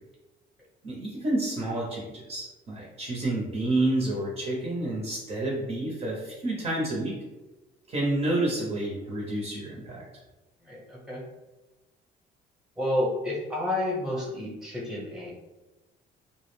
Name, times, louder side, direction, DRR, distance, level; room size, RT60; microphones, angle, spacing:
voice 1, 0.8-7.1 7.9-10.0, right 1 dB, 35° right, -3 dB, 0.6 m, -29 dB
voice 2, 10.6-11.2 12.8-15.3, left 1 dB, 5° right, -4 dB, 0.8 m, -30 dB
2.3 x 2.0 x 3.1 m, 1.1 s
cardioid pair, 110°, 17 cm